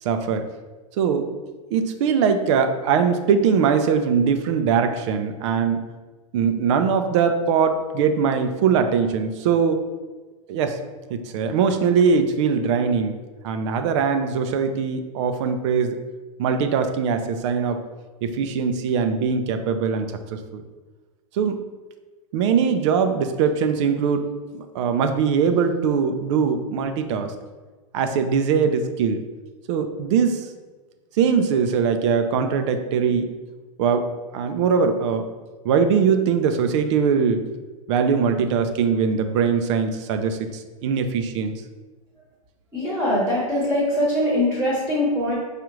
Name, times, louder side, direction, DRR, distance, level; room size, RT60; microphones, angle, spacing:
voice 1, 0.0-0.4 1.0-1.3 1.7-5.8 6.3-9.8 10.5-10.8 11.1-13.1 13.4-16.0 16.4-17.8 18.2-20.6 21.3-21.6 22.3-27.3 27.9-29.2 29.7-30.5 31.2-33.3 33.8-34.1 34.3-35.3 35.6-37.4 37.9-41.5, right 6 dB, 50° right, 8 dB, 0.4 m, -21 dB
voice 2, 42.7-45.3, left 1 dB, 10° right, -7 dB, 1.0 m, -22 dB
4.9 x 2.4 x 3.0 m, 1.3 s
hypercardioid pair, 135°, 19 cm